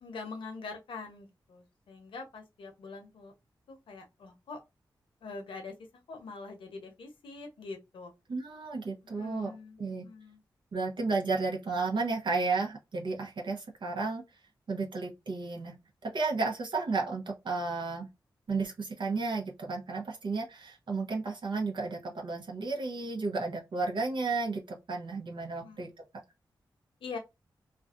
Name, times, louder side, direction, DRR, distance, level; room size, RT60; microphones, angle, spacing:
voice 1, 0.0-3.3 3.7-4.6 5.2-5.7 6.1-8.1 9.1-10.4 25.6-25.9 27.0-27.2, left 4 dB, 85° left, 0.8 m, -44 dB
voice 2, 8.3-9.5 9.8-10.1 10.7-14.2 14.7-15.8 16.0-18.1 18.5-25.9, right 3 dB, 65° right, 0.7 m, -33 dB
2.4 x 2.2 x 2.4 m
cardioid pair, 55°, 9 cm